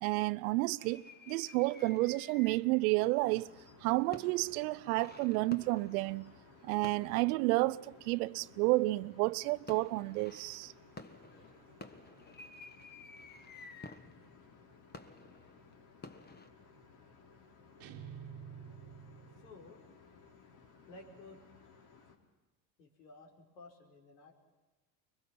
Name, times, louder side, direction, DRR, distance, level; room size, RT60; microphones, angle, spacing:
voice 1, 0.0-3.5 3.8-6.3 6.6-10.7, right 21 dB, 65° right, 0.6 m, -31 dB
sound 1, 0.8-2.8 3.3-8.2 8.9-9.3 9.7-16.5, left 3 dB, 20° left, 1.5 m, -53 dB
sound 2, 3.2-22.2, left 5 dB, 50° left, 3.9 m, -60 dB
sound 3, 17.8-19.8, right 8 dB, 45° right, 1.4 m, -49 dB
voice 2, 19.4-19.8 20.9-21.5 22.8-24.3, left 2 dB, 75° left, 4.9 m, -54 dB
25.0 x 22.5 x 5.9 m
hypercardioid pair, 80°, 49 cm